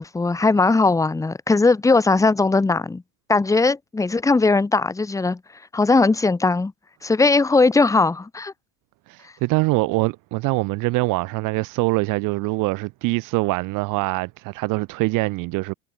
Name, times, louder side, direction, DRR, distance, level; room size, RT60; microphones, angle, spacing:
voice 1, 0.0-3.0 3.3-5.4 5.7-6.7 7.0-8.5, left 3 dB, 10° left, 1.0 m, -19 dB
voice 2, 9.1-15.7, right 23 dB, 55° right, 1.0 m, -23 dB
supercardioid pair, 110°, 39 cm